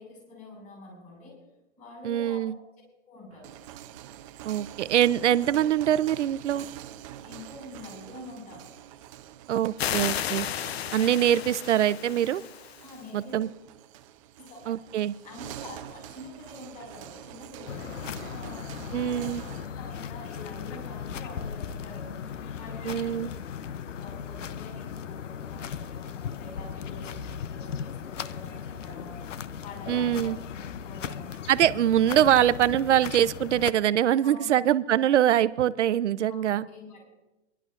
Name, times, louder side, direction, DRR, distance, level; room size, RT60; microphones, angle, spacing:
voice 1, 0.0-1.4 1.8-2.4 3.1-3.6 7.2-8.8 12.8-13.4 14.4-14.6 15.2-23.2 23.6-29.2 29.6-31.4 34.2-34.6 36.3-37.0, left 2 dB, 20° left, -1 dB, 5.7 m, -46 dB
voice 2, 2.0-2.6 4.4-6.7 9.5-10.5 10.9-12.4 13.1-13.5 14.7-15.1 18.9-19.4 22.8-23.3 29.9-30.4 31.5-36.6, right 11 dB, 70° right, 14 dB, 0.7 m, -23 dB
sound 1, 3.3-19.7, right 12 dB, 25° right, 0.6 m, -46 dB
sound 2, 9.8-13.1, left 10 dB, 55° left, 0.7 m, -33 dB
sound 3, 17.7-33.7, left 7 dB, 90° left, 0.8 m, -37 dB
25.5 x 11.5 x 2.5 m, 0.99 s
hypercardioid pair, 150°, 36 cm